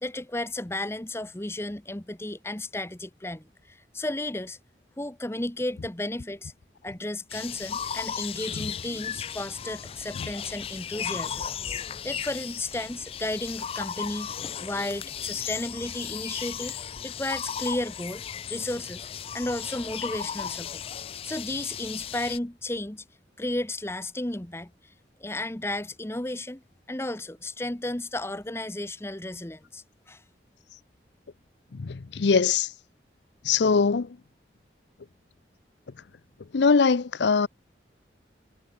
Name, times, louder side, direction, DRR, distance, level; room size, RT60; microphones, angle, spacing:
voice 1, 0.0-4.6 5.0-6.5 6.8-11.5 12.0-14.3 14.6-16.7 17.0-18.2 18.5-20.8 21.2-23.0 23.4-24.7 25.2-26.6 26.9-30.2, left 1 dB, 15° left, 0.9 m, -33 dB
sound 1, 7.3-22.4, left 8 dB, 30° left, 0.3 m, -35 dB
voice 2, 31.7-32.7 33.4-34.2 36.5-37.5, left 5 dB, 80° left, 0.6 m, -22 dB
head